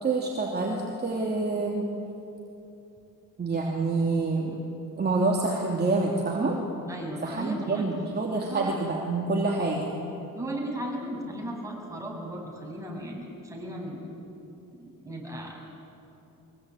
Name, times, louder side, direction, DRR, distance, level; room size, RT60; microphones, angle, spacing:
voice 1, 0.0-1.9 3.4-4.6 5.0-6.6 7.2-9.9, right 3 dB, 30° right, -2 dB, 3.0 m, -27 dB
voice 2, 6.9-7.9 8.5-8.8 9.5-9.7 10.3-14.0 14.8-15.6, right 1 dB, 10° right, -1 dB, 7.1 m, -36 dB
23.5 x 22.0 x 9.1 m, 2.8 s
cardioid pair, 110°, 33 cm